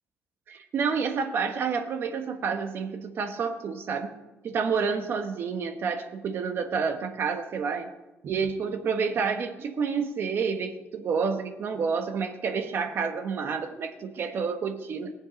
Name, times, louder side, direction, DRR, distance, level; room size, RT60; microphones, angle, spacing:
voice 1, 0.5-4.1 4.4-7.9 8.2-15.1, right 5 dB, 50° right, 6 dB, 1.2 m, -29 dB
22.0 x 7.7 x 5.1 m, 1.1 s
cardioid pair, 150°, 5 cm